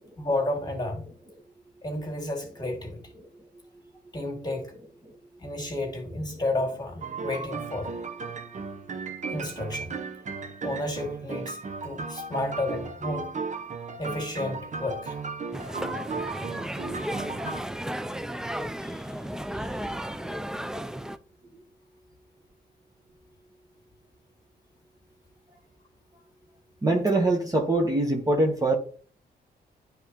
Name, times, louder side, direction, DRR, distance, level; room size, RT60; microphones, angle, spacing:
voice 1, 0.2-1.1 1.8-3.0 4.1-4.7 5.4-7.9 9.3-10.0 10.6-11.6 11.8-13.3 14.0-15.2, left 2 dB, 20° left, 2.1 m, -31 dB
sound 1, 7.0-17.6, right 4 dB, 45° right, 0.8 m, -36 dB
sound 2, 15.5-21.2, equal, 5° right, 0.3 m, -34 dB
voice 2, 26.8-28.8, right 2 dB, 20° right, 1.0 m, -23 dB
9.8 x 3.5 x 2.9 m
cardioid pair, 85°, 18 cm